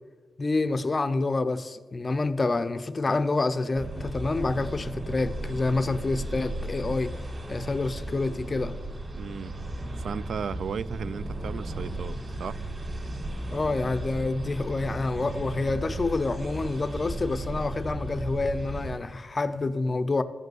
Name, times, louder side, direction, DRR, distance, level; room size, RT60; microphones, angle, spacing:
voice 1, 0.4-7.1 7.5-8.8 13.5-20.2, left 3 dB, 30° left, 0.5 m, -28 dB
sound 1, 3.8-19.0, right 1 dB, 35° right, 2.2 m, -35 dB
voice 2, 9.1-9.6 10.0-12.6, right 6 dB, 75° right, 0.3 m, -35 dB
14.0 x 5.3 x 7.8 m
wide cardioid pair, 145°, 0 cm